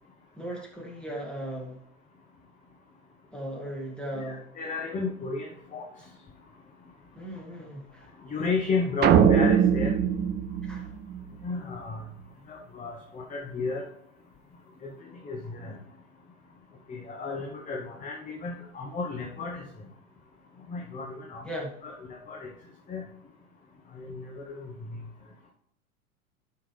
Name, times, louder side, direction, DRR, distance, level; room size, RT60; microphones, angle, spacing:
voice 1, 0.4-1.8 3.3-4.5 7.1-8.1 10.6-10.9 21.4-21.8, right 1 dB, ahead, -2 dB, 2.1 m, -37 dB
voice 2, 4.1-5.8 8.2-9.9 11.4-12.0 12.5-13.9 14.8-14.9 15.2-15.8 16.9-19.7 20.7-22.5 22.9-23.0 23.9-25.0, left 4 dB, 20° left, 0 dB, 1.1 m, -33 dB
sound 1, 9.0-11.5, right 8 dB, 25° right, 0.6 m, -22 dB
11.0 x 5.8 x 3.3 m, 0.75 s
figure-of-eight pair, 95°, 42 cm